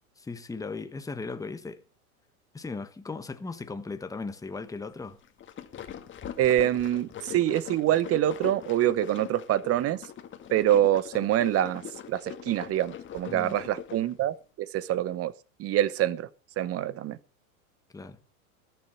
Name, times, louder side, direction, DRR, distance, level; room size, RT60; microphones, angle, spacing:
voice 1, 0.2-1.8 2.5-5.2 13.3-13.6 17.9-18.2, left 4 dB, 10° left, 1.2 m, -37 dB
sound 1, 5.2-14.1, left 9 dB, 25° left, 2.0 m, -41 dB
voice 2, 6.4-10.0 10.5-15.3 15.6-16.3 16.6-17.2, right 12 dB, 30° right, 1.0 m, -25 dB
20.5 x 7.1 x 5.8 m
hypercardioid pair, 100°, 44 cm